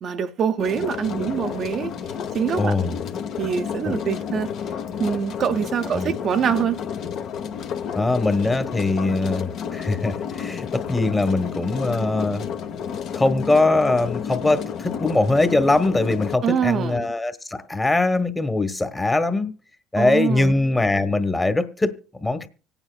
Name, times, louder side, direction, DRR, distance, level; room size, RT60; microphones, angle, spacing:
voice 1, 0.0-1.9 2.3-2.8 3.4-4.5 5.0-6.8 16.4-17.1 20.0-20.5, right 7 dB, 50° right, 0.7 m, -24 dB
sound 1, 0.6-16.4, left 7 dB, 60° left, 1.0 m, -31 dB
voice 2, 2.6-3.0 3.8-4.0 5.9-6.2 7.9-12.4 13.1-19.5 19.9-22.5, left 2 dB, 15° left, 1.1 m, -22 dB
25.5 x 9.0 x 2.4 m
supercardioid pair, 85°, 0 cm